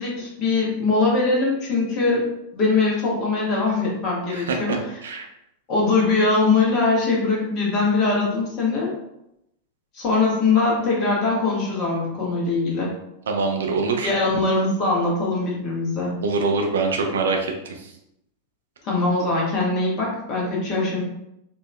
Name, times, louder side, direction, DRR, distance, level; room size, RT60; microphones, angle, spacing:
voice 1, 0.0-2.3 2.5-4.9 5.7-8.9 9.9-12.9 14.0-16.1 18.8-21.0, left 3 dB, 35° left, -4 dB, 1.3 m, -22 dB
voice 2, 4.3-5.3 13.3-14.1 16.2-17.9, right 4 dB, 65° right, 2 dB, 0.5 m, -24 dB
4.4 x 2.6 x 2.2 m, 0.83 s
figure-of-eight pair, 90°, 0 cm